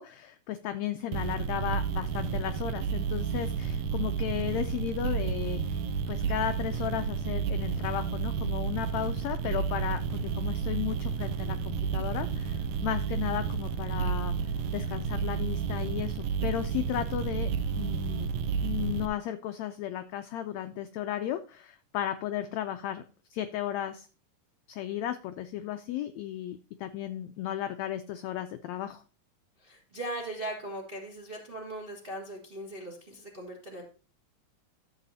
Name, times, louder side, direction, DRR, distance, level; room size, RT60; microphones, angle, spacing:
voice 1, 0.0-5.8 6.1-14.3 14.7-17.5 17.8-18.3 18.6-23.0 23.3-24.1 24.7-29.0, left 11 dB, 90° left, 9 dB, 1.5 m, -34 dB
sound 1, 1.1-19.1, right 6 dB, 90° right, 1.4 m, -31 dB
voice 2, 29.6-33.8, right 1 dB, 35° right, 1 dB, 0.9 m, -39 dB
12.0 x 7.6 x 2.7 m, 0.37 s
omnidirectional pair, 3.8 m